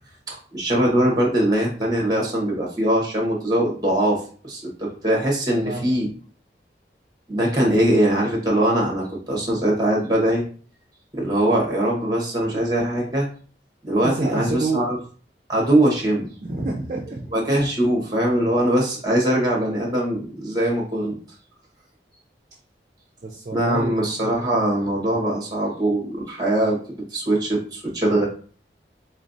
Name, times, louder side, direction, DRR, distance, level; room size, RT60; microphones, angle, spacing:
voice 1, 0.3-6.1 7.3-10.4 11.1-13.3 13.8-15.0 15.5-16.3 17.3-21.1 23.5-26.8 27.1-28.3, right 1 dB, 20° right, -2 dB, 1.3 m, -21 dB
voice 2, 5.7-6.0 14.0-14.9 16.4-17.3 23.2-24.3, right 3 dB, 40° right, -1 dB, 0.5 m, -28 dB
3.9 x 3.2 x 2.6 m, 0.42 s
head